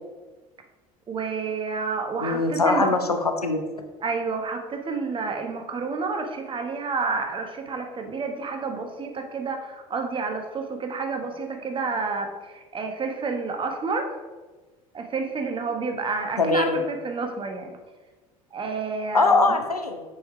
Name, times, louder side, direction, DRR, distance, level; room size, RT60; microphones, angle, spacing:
voice 1, 1.1-2.9 4.0-14.1 14.9-17.7 18.5-19.6, right 4 dB, 25° right, 4 dB, 1.2 m, -29 dB
voice 2, 2.2-3.6 16.4-16.8 19.1-20.0, left 3 dB, 85° left, 5 dB, 0.7 m, -22 dB
6.9 x 5.0 x 4.5 m, 1.3 s
figure-of-eight pair, 65°, 19 cm